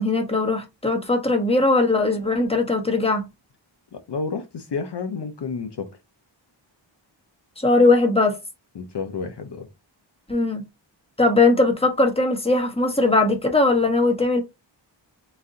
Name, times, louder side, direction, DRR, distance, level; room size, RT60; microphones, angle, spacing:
voice 1, 0.0-3.2 7.6-8.4 10.3-10.6 11.2-14.4, left 2 dB, 10° left, 1.1 m, -19 dB
voice 2, 3.9-5.9 8.8-9.7, left 5 dB, 60° left, 0.7 m, -30 dB
4.1 x 2.6 x 3.7 m
wide cardioid pair, 80°, 47 cm